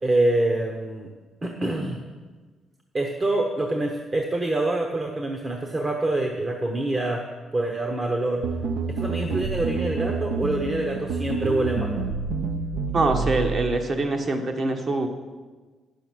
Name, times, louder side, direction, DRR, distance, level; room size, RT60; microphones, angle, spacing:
voice 1, 0.0-1.1 1.4-2.0 2.9-8.4 8.9-12.0, right 2 dB, 25° right, 2 dB, 0.9 m, -26 dB
sound 1, 8.4-13.8, right 4 dB, 75° right, 0.7 m, -28 dB
voice 2, 12.9-15.1, right 2 dB, 45° right, 5 dB, 1.3 m, -24 dB
10.0 x 6.9 x 6.2 m, 1.4 s
cardioid pair, 110°, 0 cm